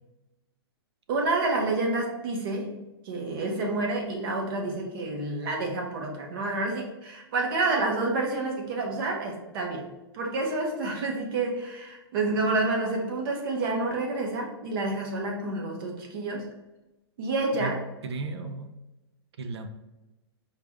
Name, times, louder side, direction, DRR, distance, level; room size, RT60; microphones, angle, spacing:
voice 1, 1.1-2.8 3.0-9.9 10.1-16.5 17.2-17.8, right 2 dB, 55° right, 1 dB, 1.2 m, -29 dB
voice 2, 17.5-18.7 19.4-19.7, right 3 dB, 75° right, 7 dB, 0.6 m, -35 dB
4.7 x 2.4 x 3.5 m, 1.0 s
hypercardioid pair, 125°, 14 cm